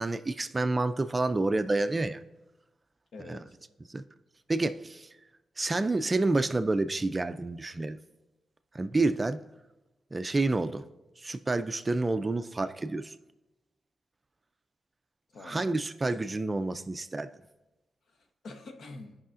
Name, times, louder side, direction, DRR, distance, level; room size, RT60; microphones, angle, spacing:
voice 1, 0.0-2.2 3.2-3.4 3.9-4.0 4.5-5.1 5.6-8.0 8.7-9.4 10.1-10.8 11.2-13.2 15.4-17.3, right 2 dB, 25° right, 10 dB, 0.3 m, -29 dB
voice 2, 3.1-3.6 15.3-15.8 18.1-19.2, left 3 dB, 70° left, 5 dB, 0.9 m, -46 dB
15.5 x 5.5 x 2.5 m, 1.0 s
wide cardioid pair, 125°, 0 cm